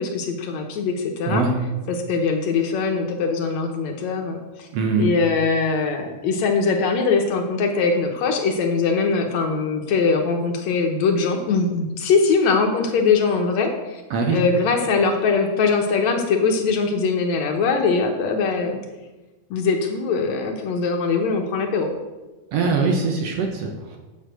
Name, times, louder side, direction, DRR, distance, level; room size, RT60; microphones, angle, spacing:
voice 1, 0.0-1.4 1.9-4.7 5.0-14.0 14.3-18.8 19.5-21.9, left 4 dB, 70° left, 3 dB, 2.1 m, -21 dB
voice 2, 4.7-5.1 14.1-14.4 22.5-24.0, right 4 dB, 65° right, 2 dB, 1.9 m, -22 dB
7.3 x 6.7 x 7.8 m, 1.2 s
omnidirectional pair, 3.6 m